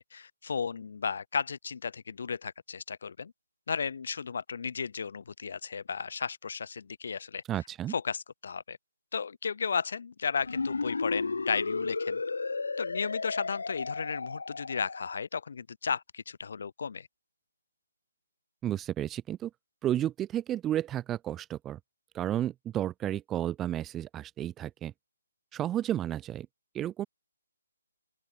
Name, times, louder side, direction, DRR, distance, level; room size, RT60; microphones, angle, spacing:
voice 1, 0.0-3.3 3.7-7.4 7.9-8.8 9.1-12.2 12.8-17.1, left 6 dB, 40° left, 1.0 m, -34 dB
voice 2, 7.5-7.9 18.6-19.5 19.8-21.8 22.1-24.9 25.5-26.5 26.7-27.1, right 12 dB, 5° right, 0.4 m, -32 dB
sound 1, 10.4-15.2, left 4 dB, 75° left, 0.4 m, -33 dB
open air
hypercardioid pair, 180°, 0 cm